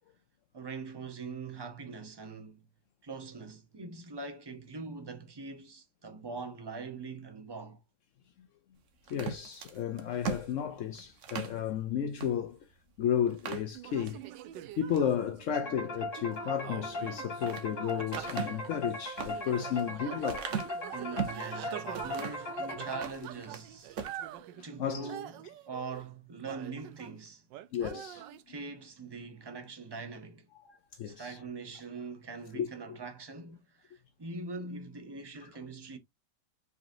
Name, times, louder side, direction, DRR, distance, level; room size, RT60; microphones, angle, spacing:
voice 1, 0.5-2.7 3.0-7.8 20.9-24.0 24.6-27.4 28.5-30.5 31.0-36.0, right 4 dB, 25° right, 0.5 m, -42 dB
voice 2, 9.1-12.6 13.0-14.2 14.8-20.5 24.8-25.1 27.7-28.3 30.6-31.4 32.5-33.0, left 9 dB, 70° left, 0.7 m, -33 dB
sound 1, 9.1-11.6 12.2-12.3 12.7-12.8 13.3-14.2 14.7-15.1 16.9-17.7 18.1-21.5 21.9-22.5 22.9-23.7 23.9-24.2, right 7 dB, 50° right, 1.0 m, -39 dB
sound 2, 13.7-27.2 27.5-28.4, right 13 dB, 80° right, 1.3 m, -45 dB
sound 3, 15.5-23.4, left 1 dB, 45° left, 1.9 m, -39 dB
5.0 x 4.0 x 2.6 m
omnidirectional pair, 1.9 m